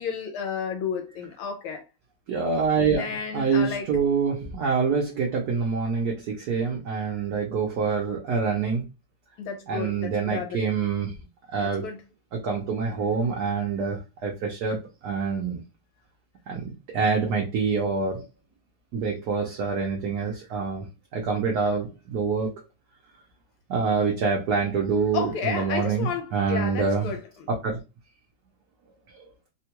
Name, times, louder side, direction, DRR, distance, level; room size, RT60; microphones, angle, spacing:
voice 1, 0.0-1.9 2.9-3.9 9.4-10.6 11.6-12.0 25.1-27.5, left 7 dB, 85° left, 1.5 m, -32 dB
voice 2, 2.3-3.1 3.3-8.9 9.7-11.1 11.5-11.9 12.3-15.6 16.5-18.2 18.9-20.9 21.1-22.5 23.7-27.1 27.5-27.8, right 5 dB, 65° right, 1.0 m, -26 dB
3.5 x 2.2 x 2.9 m
omnidirectional pair, 2.3 m